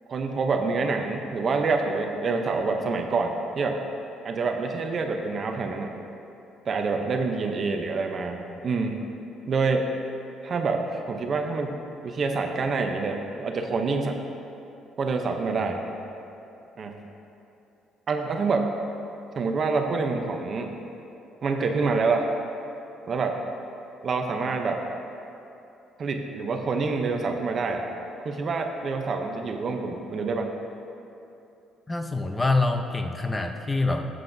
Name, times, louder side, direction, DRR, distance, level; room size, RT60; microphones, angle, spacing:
voice 1, 0.1-3.8 4.2-5.9 6.6-9.0 9.5-9.9 10.4-11.7 12.0-14.2 15.0-15.8 16.8-17.0 18.1-18.7 19.4-20.7 21.4-22.3 23.1-23.4 24.0-24.8 26.0-27.9 28.2-30.5, right 4 dB, 40° right, 4 dB, 0.6 m, -27 dB
voice 2, 31.9-34.0, left 3 dB, 15° left, 5 dB, 0.6 m, -25 dB
14.5 x 7.7 x 2.6 m, 2.8 s
cardioid pair, 135°, 0 cm